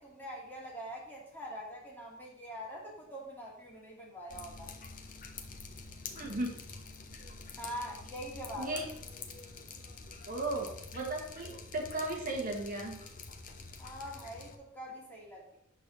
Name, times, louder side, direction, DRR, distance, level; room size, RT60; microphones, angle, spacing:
voice 1, 0.0-4.7 7.6-8.8 13.8-15.6, equal, 10° left, -4 dB, 2.4 m, -44 dB
Drip, 4.3-14.6, left 4 dB, 40° left, 0.9 m, -47 dB
voice 2, 6.2-6.5 8.5-8.8 10.3-13.0, right 2 dB, 40° right, 0 dB, 1.5 m, -36 dB
8.9 x 4.1 x 6.9 m, 0.76 s
head